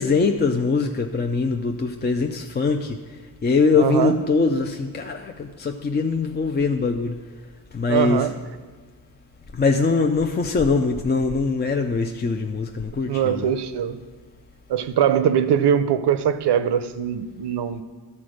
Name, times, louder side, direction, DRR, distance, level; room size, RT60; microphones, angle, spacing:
voice 1, 0.0-3.0 3.4-7.2 7.7-8.3 9.5-13.5, left 4 dB, 25° left, 4 dB, 0.4 m, -22 dB
voice 2, 3.8-4.1 7.9-8.4 13.1-14.0 14.7-17.8, right 9 dB, 75° right, 12 dB, 0.6 m, -21 dB
12.0 x 4.3 x 6.3 m, 1.4 s
cardioid pair, 100°, 40 cm